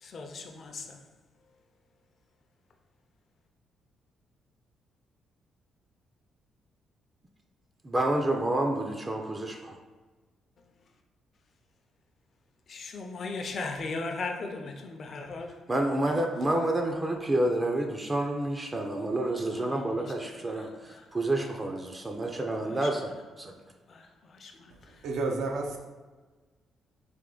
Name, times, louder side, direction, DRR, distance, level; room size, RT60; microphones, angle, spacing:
voice 1, 0.0-1.0 12.7-15.6 16.0-16.2 19.5-21.0 22.6-22.9 23.9-25.0, left 3 dB, 50° left, 0.5 m, -39 dB
voice 2, 7.8-9.8 15.7-23.1 23.4-23.5, right 1 dB, 25° right, 0.4 m, -29 dB
voice 3, 24.7-25.8, right 3 dB, 80° right, 0.6 m, -32 dB
3.4 x 2.9 x 3.8 m
cardioid pair, 90°, 0 cm